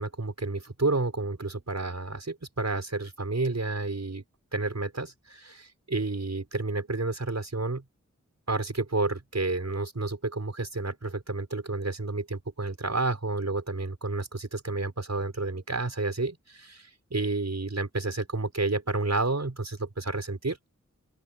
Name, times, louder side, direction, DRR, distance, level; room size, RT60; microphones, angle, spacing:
voice 1, 0.0-4.2 4.5-7.8 8.5-20.6, right 3 dB, 60° right, 5.7 m, -30 dB
open air
wide cardioid pair, 40°, 30 cm